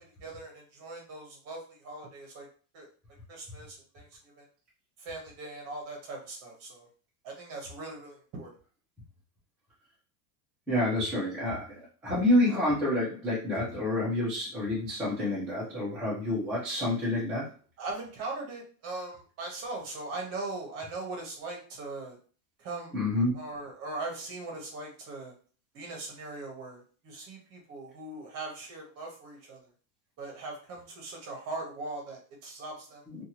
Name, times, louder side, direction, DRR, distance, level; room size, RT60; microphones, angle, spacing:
voice 1, 0.0-2.5 2.7-2.9 3.3-4.4 5.0-6.9 7.2-8.5 17.8-22.2 22.6-23.0 23.3-25.3 25.7-29.7 30.2-33.0, right 2 dB, 35° right, 0 dB, 0.9 m, -40 dB
voice 2, 10.7-11.6 12.0-17.5 22.9-23.3 33.1-33.2, left 1 dB, ahead, -11 dB, 0.3 m, -28 dB
2.6 x 2.4 x 2.8 m, 0.40 s
supercardioid pair, 165°, 44 cm